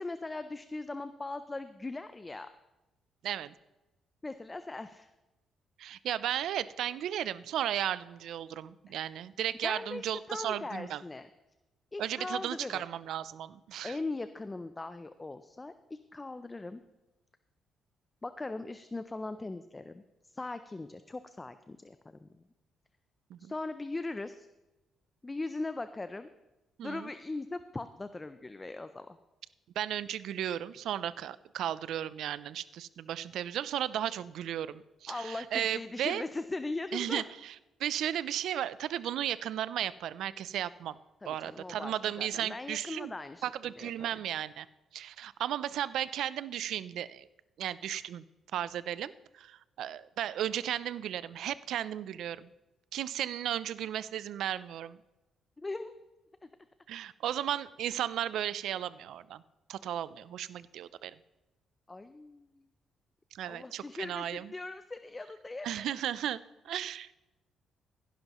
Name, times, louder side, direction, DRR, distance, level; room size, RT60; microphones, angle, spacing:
voice 1, 0.0-2.5 4.2-5.1 8.9-9.0 9.6-11.3 11.9-12.8 13.8-16.8 18.2-22.3 23.4-24.5 25.2-26.3 26.8-29.2 35.1-37.2 41.2-43.4 43.8-44.2 55.6-55.9 56.4-56.5 61.9-62.7 63.5-65.9, left 2 dB, 20° left, 11 dB, 0.5 m, -40 dB
voice 2, 3.2-3.5 5.8-11.0 12.0-14.0 23.3-23.5 26.8-27.1 29.8-36.2 36.9-37.5 37.8-41.0 41.2-43.1 43.4-44.7 44.9-47.3 47.6-48.2 48.5-52.5 52.9-55.0 56.9-59.4 59.7-61.1 63.3-64.5 65.6-67.3, right 11 dB, 75° right, 17 dB, 0.4 m, -35 dB
16.0 x 11.0 x 3.0 m, 1.0 s
cardioid pair, 90°, 0 cm